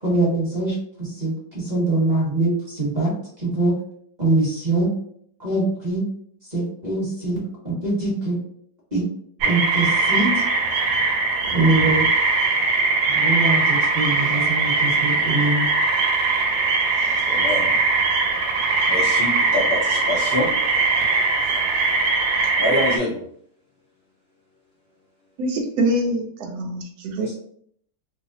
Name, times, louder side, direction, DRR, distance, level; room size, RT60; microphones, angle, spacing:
voice 1, 0.0-3.7 4.2-4.9 5.4-6.1 6.5-8.4 8.9-9.0 9.4-10.4 11.5-12.1 13.1-15.7, right 2 dB, 30° right, -5 dB, 0.9 m, -23 dB
sound 1, 9.4-23.0, right 3 dB, 85° right, 1.3 m, -21 dB
voice 2, 17.3-17.8 18.9-20.5 22.6-23.2 27.2-27.4, left 1 dB, 70° left, -5 dB, 0.5 m, -25 dB
voice 3, 25.4-27.4, right 1 dB, 65° right, 2 dB, 1.1 m, -24 dB
3.2 x 2.0 x 3.6 m, 0.65 s
omnidirectional pair, 2.0 m